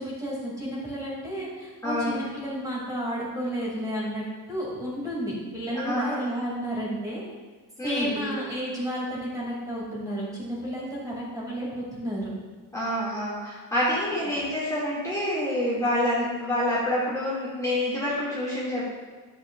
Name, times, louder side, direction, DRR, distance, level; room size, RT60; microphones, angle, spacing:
voice 1, 0.0-7.2 7.8-12.3, equal, 10° right, -6 dB, 2.3 m, -32 dB
voice 2, 1.8-2.2 5.8-6.2 7.8-8.4 12.7-18.8, left 1 dB, 10° left, -9 dB, 2.0 m, -27 dB
11.5 x 8.0 x 2.4 m, 1.4 s
cardioid pair, 165°, 37 cm